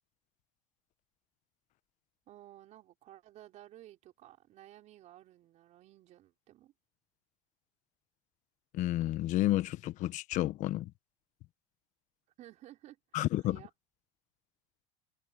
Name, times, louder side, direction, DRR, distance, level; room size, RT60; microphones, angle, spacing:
voice 1, 2.3-6.7 12.4-13.7, right 14 dB, 55° right, 4.6 m, -55 dB
voice 2, 8.7-10.9 13.1-13.6, left 15 dB, 55° left, 1.4 m, -31 dB
supercardioid pair, 110°, 15 cm